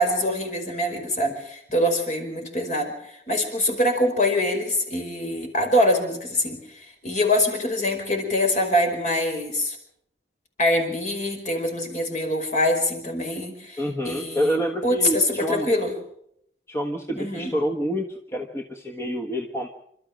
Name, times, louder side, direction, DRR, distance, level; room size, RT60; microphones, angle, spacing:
voice 1, 0.0-9.8 10.6-14.6 14.8-15.9 17.2-17.5, left 1 dB, 45° left, 4 dB, 5.0 m, -24 dB
voice 2, 13.8-15.7 16.7-19.7, equal, 15° left, 2 dB, 1.4 m, -27 dB
28.0 x 13.0 x 7.5 m, 0.72 s
head